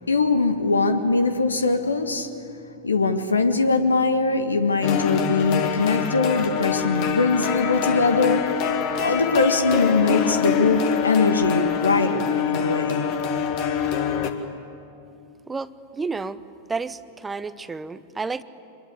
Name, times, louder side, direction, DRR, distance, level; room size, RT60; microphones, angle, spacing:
voice 1, 0.1-2.3 2.8-13.1, left 4 dB, 75° left, 8 dB, 1.8 m, -22 dB
sound 1, 4.8-14.3, left 7 dB, 45° left, 2.0 m, -25 dB
voice 2, 15.5-16.4 16.7-18.4, right 4 dB, 15° right, 14 dB, 0.8 m, -31 dB
25.5 x 21.5 x 8.7 m, 2.7 s
figure-of-eight pair, 90°, 0 cm